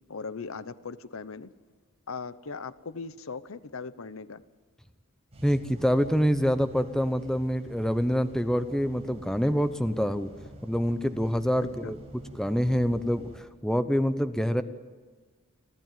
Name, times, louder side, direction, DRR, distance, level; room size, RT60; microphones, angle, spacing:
voice 1, 0.1-1.5 2.1-4.4 11.8-11.9, left 4 dB, 85° left, 15 dB, 0.8 m, -39 dB
sound 1, 5.3-13.4, right 1 dB, 30° right, 6.0 m, -48 dB
voice 2, 5.4-10.3 10.6-12.0 12.4-14.6, equal, 5° left, 11 dB, 0.8 m, -26 dB
29.5 x 12.5 x 9.2 m, 1.4 s
head